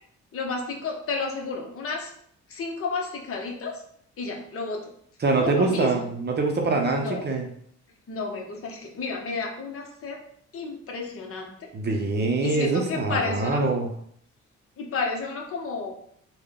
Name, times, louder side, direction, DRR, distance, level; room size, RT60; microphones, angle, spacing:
voice 1, 0.3-2.1 2.5-3.8 4.2-4.9 5.4-6.0 7.0-7.3 8.1-10.2 10.5-11.7 12.4-13.6 14.8-15.9, left 4 dB, 50° left, 1 dB, 0.8 m, -31 dB
voice 2, 5.2-7.5 11.7-13.9, right 3 dB, 35° right, 2 dB, 0.6 m, -24 dB
3.6 x 2.2 x 3.6 m, 0.64 s
cardioid pair, 90°, 30 cm